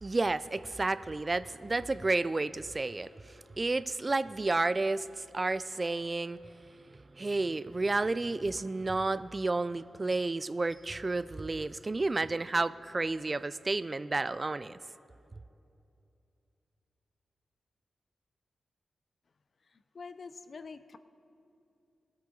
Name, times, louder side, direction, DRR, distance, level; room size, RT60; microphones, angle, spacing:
voice 1, 0.0-6.4 6.9-14.8, right 3 dB, 35° right, 15 dB, 0.3 m, -31 dB
voice 2, 19.7-21.0, left 4 dB, 60° left, 12 dB, 0.5 m, -46 dB
18.0 x 8.8 x 3.8 m, 2.7 s
cardioid pair, 50°, 0 cm